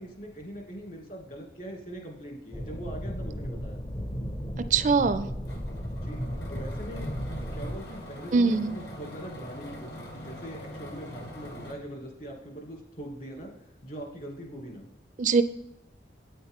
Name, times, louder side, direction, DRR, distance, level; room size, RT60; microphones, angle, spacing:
voice 1, 0.0-3.8 5.9-7.1 7.5-14.9, right 1 dB, 50° left, 2 dB, 2.1 m, -42 dB
Ambiance Underwater Stereo, 2.5-7.8, equal, 25° left, 0.6 m, -35 dB
voice 2, 4.7-5.3 8.3-8.7 15.2-15.4, right 4 dB, 45° right, 13 dB, 0.4 m, -22 dB
sound 1, 5.5-11.7, equal, 65° left, 1.8 m, -42 dB
8.8 x 8.6 x 3.6 m, 0.89 s
head